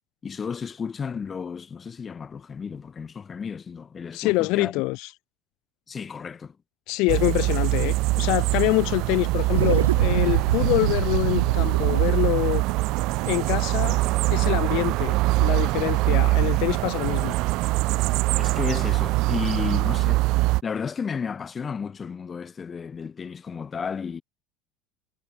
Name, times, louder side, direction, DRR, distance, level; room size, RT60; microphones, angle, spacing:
voice 1, 0.2-4.7 5.9-6.6 18.3-20.2 20.6-24.2, left 6 dB, 30° left, 1.1 m, -33 dB
voice 2, 4.1-5.1 6.9-12.6 13.3-17.4, left 25 dB, 65° left, 0.3 m, -25 dB
sound 1, 7.1-20.6, right 21 dB, 65° right, 0.5 m, -23 dB
sound 2, 9.5-14.2, right 11 dB, 85° right, 0.9 m, -27 dB
hypercardioid pair, 70°, 0 cm